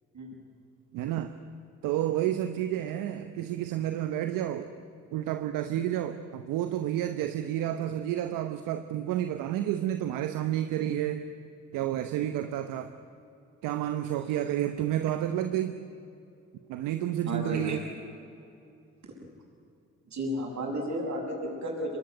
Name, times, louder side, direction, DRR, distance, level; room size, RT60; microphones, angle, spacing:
voice 1, 0.9-1.3 1.8-4.7 5.1-11.2 11.7-12.9 13.6-15.8 16.7-17.9, right 12 dB, 80° right, 9 dB, 1.0 m, -30 dB
voice 2, 17.3-17.8 20.1-22.0, equal, 60° right, 1 dB, 7.4 m, -33 dB
24.5 x 19.0 x 9.5 m, 2.6 s
hypercardioid pair, 45°, 32 cm